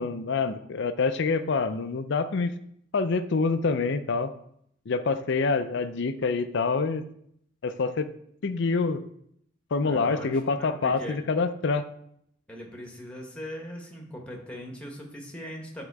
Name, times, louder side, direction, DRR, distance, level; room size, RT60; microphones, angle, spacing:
voice 1, 0.0-2.5 2.9-4.3 4.9-7.0 7.6-8.1 8.4-9.0 9.7-11.8, left 4 dB, 60° left, 11 dB, 0.5 m, -26 dB
voice 2, 9.8-11.2 12.5-15.8, equal, 5° left, 0 dB, 1.4 m, -40 dB
9.1 x 3.8 x 4.7 m, 0.71 s
head